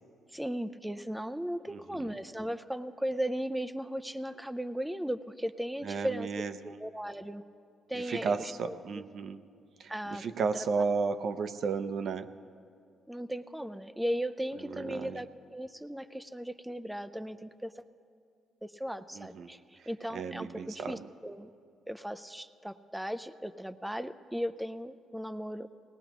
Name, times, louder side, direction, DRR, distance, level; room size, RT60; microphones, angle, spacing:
voice 1, 0.3-6.3 6.6-7.4 7.9-9.0 9.9-10.3 10.5-10.7 13.1-17.8 18.6-21.5 21.9-25.7, equal, 5° right, 10 dB, 0.4 m, -37 dB
voice 2, 1.7-2.1 5.8-6.8 7.9-9.4 9.8-12.3 14.6-15.2 19.1-19.5 19.8-21.0, right 5 dB, 60° right, 9 dB, 0.6 m, -34 dB
19.0 x 18.5 x 3.0 m, 2.4 s
cardioid pair, 90°, 0 cm